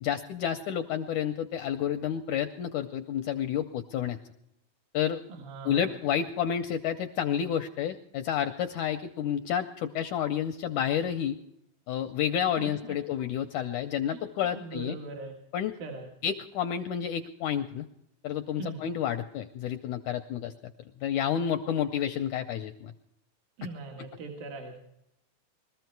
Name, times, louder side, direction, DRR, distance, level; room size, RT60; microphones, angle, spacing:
voice 1, 0.0-4.2 4.9-5.2 5.7-11.4 11.9-15.0 15.5-15.7 16.2-17.9 18.2-20.5 21.0-22.9, left 9 dB, 80° left, 7 dB, 1.7 m, -30 dB
voice 2, 5.3-6.0 12.6-13.0 14.1-15.3 15.8-16.1 18.6-18.9 23.6-24.8, right 3 dB, 75° right, 0 dB, 3.5 m, -41 dB
21.5 x 14.0 x 4.6 m, 0.79 s
omnidirectional pair, 4.2 m